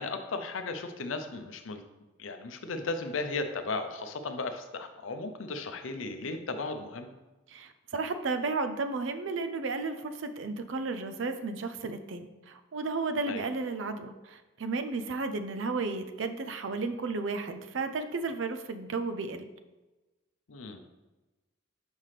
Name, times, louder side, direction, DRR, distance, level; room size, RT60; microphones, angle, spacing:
voice 1, 0.0-1.8 2.2-7.1 13.3-13.4 20.5-20.8, left 3 dB, 85° left, 7 dB, 0.6 m, -35 dB
voice 2, 7.5-19.5, right 3 dB, 70° right, 9 dB, 0.5 m, -33 dB
5.8 x 5.2 x 3.2 m, 1.1 s
head